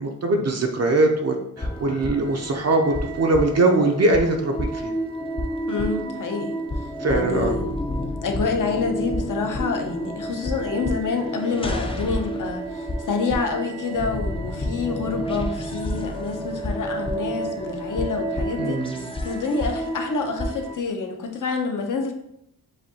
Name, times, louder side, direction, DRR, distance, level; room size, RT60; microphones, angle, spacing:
voice 1, 0.0-4.9 7.0-7.5 18.6-19.1, right 2 dB, 45° right, 2 dB, 0.5 m, -22 dB
sound 1, 1.6-20.7, equal, 15° left, 0.4 m, -30 dB
voice 2, 5.7-7.7 8.2-22.1, left 4 dB, 55° left, 4 dB, 0.8 m, -28 dB
7.3 x 2.7 x 2.7 m, 0.77 s
wide cardioid pair, 140°, 36 cm